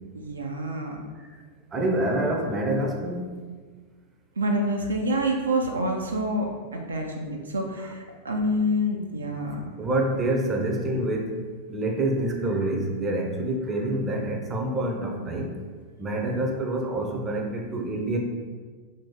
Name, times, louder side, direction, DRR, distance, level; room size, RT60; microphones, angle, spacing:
voice 1, 0.1-1.0 4.4-9.7, equal, 75° right, 1 dB, 0.3 m, -27 dB
voice 2, 1.7-3.2 7.8-7.9 9.4-11.4 11.7-15.5 16.0-18.2, right 1 dB, 20° right, 1 dB, 0.5 m, -27 dB
3.0 x 2.7 x 3.5 m, 1.5 s
figure-of-eight pair, 90°, 0 cm